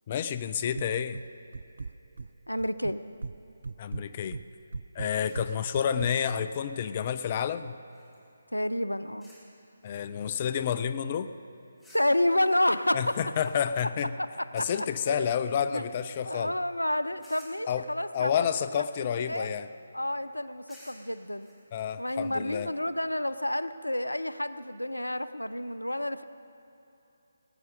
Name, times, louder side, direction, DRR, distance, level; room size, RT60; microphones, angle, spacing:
voice 1, 0.1-1.2 3.8-4.4 5.0-7.7 9.8-11.3 12.9-14.1 14.5-16.5 17.7-17.9 18.1-19.7 21.7-22.7, left 8 dB, 30° left, 12 dB, 0.4 m, -29 dB
sound 1, 0.7-1.3 1.5-2.3 2.6-3.4 3.6-6.1, right 4 dB, 60° right, 0.3 m, -38 dB
voice 2, 2.5-3.0 8.5-9.3 11.9-13.2 14.2-15.3 15.7-15.8 16.3-18.3 18.8-18.9 19.3-19.5 19.9-21.5 22.0-26.2, left 1 dB, 85° left, 14 dB, 0.5 m, -29 dB
sound 2, 5.2-8.4 9.2-9.5 9.8-11.0 11.8-14.1 14.6-15.0 15.4-16.5 17.2-17.7 18.4-19.7 20.7-22.2, left 1 dB, 5° left, 2.5 m, -59 dB
20.0 x 9.3 x 5.1 m, 2.9 s
figure-of-eight pair, 145°, 0 cm